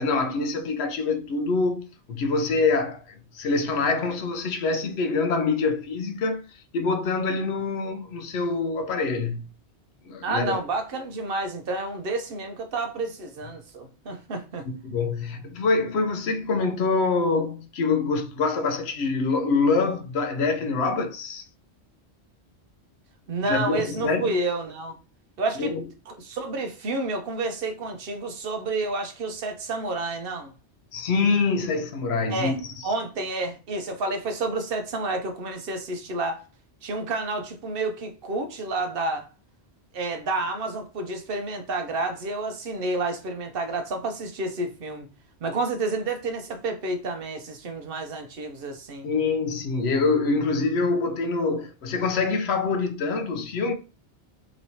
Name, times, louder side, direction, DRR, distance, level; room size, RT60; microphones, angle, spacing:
voice 1, 0.0-6.4 6.7-9.5 10.1-10.6 14.7-21.4 23.5-24.3 25.6-25.8 30.9-32.5 49.0-53.7, left 4 dB, 70° left, 0.8 m, -25 dB
voice 2, 10.2-14.7 23.3-24.9 25.4-25.7 26.1-30.5 32.3-32.6 32.8-36.4 36.8-39.3 39.9-45.1 45.4-49.1, right 2 dB, 60° right, 0.7 m, -30 dB
3.0 x 3.0 x 2.7 m
omnidirectional pair, 1.2 m